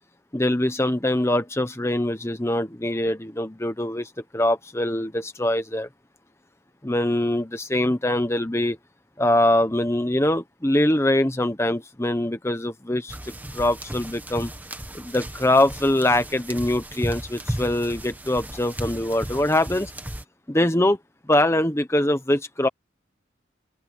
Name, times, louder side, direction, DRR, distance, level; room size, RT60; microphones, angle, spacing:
voice 1, 0.3-5.9 6.8-8.8 9.2-14.5 14.9-19.9 20.5-21.0 21.3-22.7, left 1 dB, 15° left, 1.1 m, -23 dB
sound 1, 13.1-20.2, right 1 dB, 10° right, 1.4 m, -35 dB
open air
head